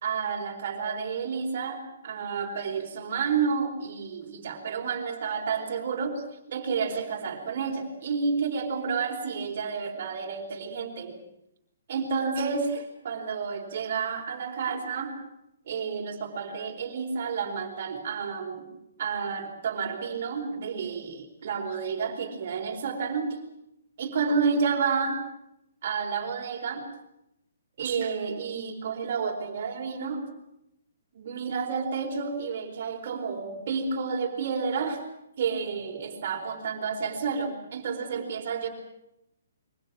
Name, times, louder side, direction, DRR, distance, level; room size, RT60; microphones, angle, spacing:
voice 1, 0.0-11.2 11.9-15.2 15.7-18.7 19.0-23.4 24.0-25.2 25.8-26.9 27.8-30.3 31.1-35.0 35.4-38.7, right 5 dB, 35° right, 3 dB, 4.4 m, -30 dB
27.0 x 23.5 x 6.1 m, 0.82 s
hypercardioid pair, 180°, 0 cm